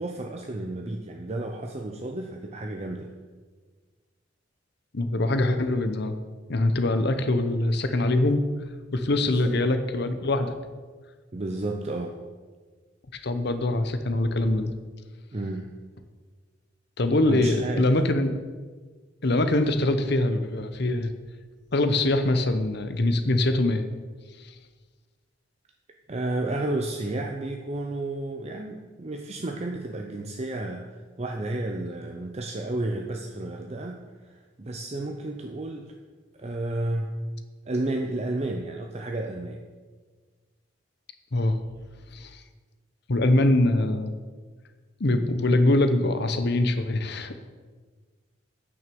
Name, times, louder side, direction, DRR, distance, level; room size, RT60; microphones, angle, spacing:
voice 1, 0.0-3.1 9.2-9.6 11.3-12.2 15.3-15.7 17.3-17.9 26.1-30.9 31.2-35.9 36.4-37.1 37.7-39.6, right 2 dB, 30° right, 2 dB, 0.6 m, -32 dB
voice 2, 4.9-6.1 6.5-8.4 8.9-10.5 13.1-14.7 17.0-18.4 19.2-21.1 21.7-23.8 41.3-41.6 42.1-42.4 43.1-44.1 45.0-47.5, left 2 dB, 55° left, 9 dB, 0.8 m, -23 dB
9.5 x 6.1 x 6.9 m, 1.4 s
head